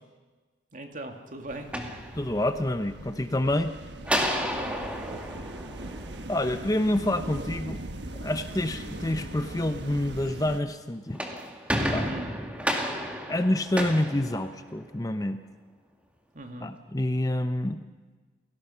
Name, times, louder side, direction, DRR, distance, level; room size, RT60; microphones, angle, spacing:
voice 1, 0.7-1.7 4.5-5.3 12.1-12.3 16.3-16.8, right 1 dB, 45° right, 4 dB, 2.4 m, -40 dB
sound 1, 1.5-10.6, right 1 dB, 70° right, 1.4 m, -40 dB
sound 2, 1.7-2.7 4.0-6.5 10.9-15.0, equal, 5° right, 2.2 m, -31 dB
voice 2, 2.1-3.7 6.3-7.8 8.1-11.3 11.9-12.1 13.3-15.4 16.6-17.8, left 1 dB, 20° left, 9 dB, 0.8 m, -27 dB
29.5 x 18.0 x 5.8 m, 1.3 s
head